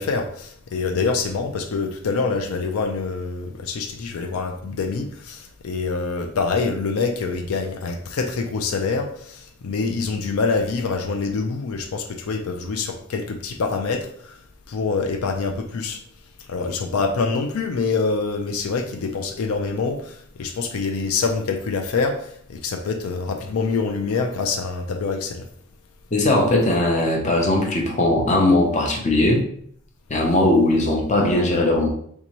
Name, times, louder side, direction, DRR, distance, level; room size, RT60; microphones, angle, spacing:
voice 1, 0.0-14.4 14.7-16.0 16.5-25.5, left 4 dB, 75° left, 5 dB, 0.4 m, -25 dB
voice 2, 26.1-29.4 30.1-31.9, left 1 dB, 30° left, 1 dB, 0.6 m, -19 dB
3.5 x 2.7 x 3.0 m, 0.64 s
head